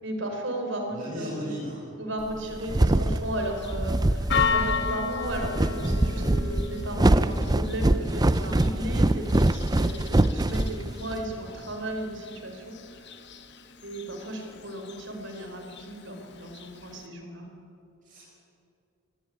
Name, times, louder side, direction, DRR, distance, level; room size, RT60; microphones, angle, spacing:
voice 1, 0.0-1.5 2.0-13.1 13.8-17.5, right 1 dB, 60° right, 4 dB, 4.6 m, -35 dB
voice 2, 0.9-1.8 2.7-3.0 10.7-11.0 18.0-18.2, equal, 40° right, -4 dB, 5.4 m, -37 dB
sound 1, 2.3-11.2, right 1 dB, 20° right, 0.6 m, -24 dB
Church bell, 3.2-17.1, left 6 dB, 55° left, 1.6 m, -35 dB
24.0 x 17.5 x 9.7 m, 2.5 s
head